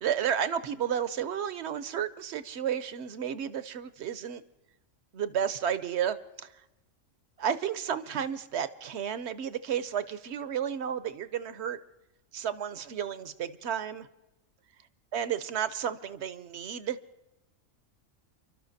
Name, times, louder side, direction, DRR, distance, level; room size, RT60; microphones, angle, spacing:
voice 1, 0.0-4.4 5.1-6.5 7.4-11.8 12.3-14.1 15.1-17.0, right 8 dB, 65° right, 13 dB, 0.8 m, -32 dB
29.5 x 12.5 x 2.7 m, 0.94 s
omnidirectional pair, 1.4 m